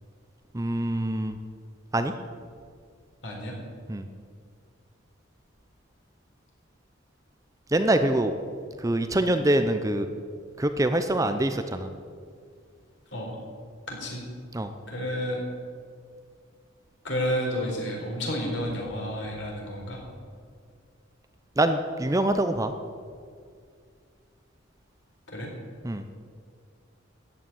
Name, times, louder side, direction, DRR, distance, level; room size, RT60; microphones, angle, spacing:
voice 1, 0.5-1.4 1.9-2.1 3.9-4.1 7.7-8.3 8.8-10.1 10.6-11.9 14.5-14.7 21.6-22.7 25.8-26.2, right 1 dB, 15° right, 8 dB, 0.6 m, -24 dB
voice 2, 3.2-3.6 13.1-13.3 13.9-14.2 14.9-15.4 17.0-20.0 25.3-25.5, equal, 60° left, -1 dB, 4.3 m, -31 dB
14.0 x 8.8 x 9.2 m, 2.1 s
head